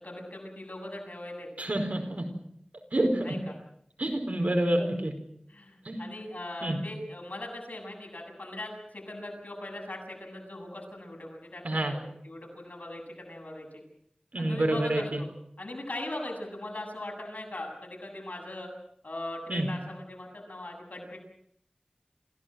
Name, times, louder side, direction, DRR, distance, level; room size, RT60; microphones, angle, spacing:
voice 1, 0.0-1.5 3.2-3.5 4.4-4.5 4.8-4.9 5.5-12.0 12.2-13.8 14.4-15.3 15.6-18.7 19.0-21.2, left 1 dB, 85° left, 1 dB, 7.6 m, -40 dB
voice 2, 1.6-2.3 2.9-3.3 4.0-5.1 5.8-6.0 6.6-6.8 11.6-11.9 14.3-15.2 19.5-19.7, right 1 dB, 70° right, 5 dB, 4.8 m, -28 dB
27.5 x 16.0 x 7.8 m, 0.71 s
wide cardioid pair, 50°, 3 cm